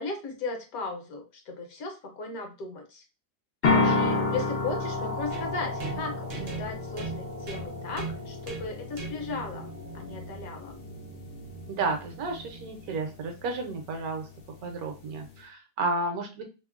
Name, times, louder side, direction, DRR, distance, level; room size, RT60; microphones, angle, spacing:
voice 1, 0.0-3.0 3.9-10.8, left 3 dB, 70° left, 3 dB, 1.1 m, -36 dB
sound 1, 3.6-15.4, left 3 dB, 90° left, 0.5 m, -32 dB
voice 2, 3.6-4.2 11.7-14.3 14.6-16.4, right 3 dB, 70° right, 4 dB, 1.0 m, -32 dB
sound 2, 5.3-13.1, right 4 dB, 55° right, 0.7 m, -41 dB
2.9 x 2.0 x 2.3 m, 0.30 s
omnidirectional pair, 1.7 m